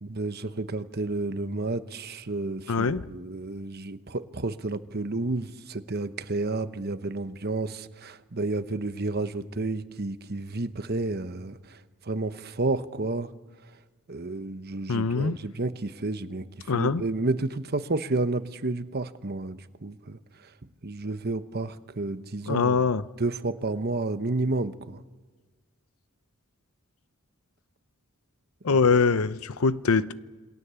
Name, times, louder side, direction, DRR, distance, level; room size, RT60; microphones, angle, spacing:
voice 1, 0.0-13.3 14.1-22.8 23.2-25.0 28.7-29.0, right 2 dB, 45° right, 1.0 m, -31 dB
voice 2, 2.7-3.0 14.9-15.4 16.7-17.0 22.5-23.0 28.6-30.1, left 4 dB, 80° left, 0.7 m, -23 dB
27.5 x 22.5 x 7.0 m
head